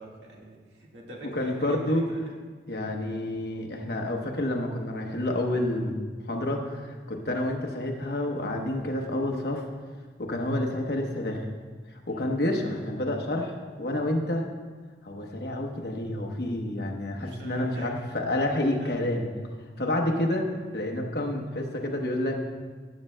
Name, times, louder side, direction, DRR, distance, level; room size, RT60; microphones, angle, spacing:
voice 1, 0.0-2.3 2.9-3.2 7.1-7.2 12.1-12.3 17.2-18.0 18.8-19.0, right 2 dB, 80° right, -2 dB, 1.7 m, -46 dB
voice 2, 1.3-2.1 2.7-6.0 6.3-9.6 10.2-11.4 12.1-14.4 15.0-19.2 19.8-20.5 20.7-22.5, left 1 dB, 60° left, 1 dB, 1.0 m, -29 dB
16.0 x 7.3 x 2.2 m, 1.5 s
head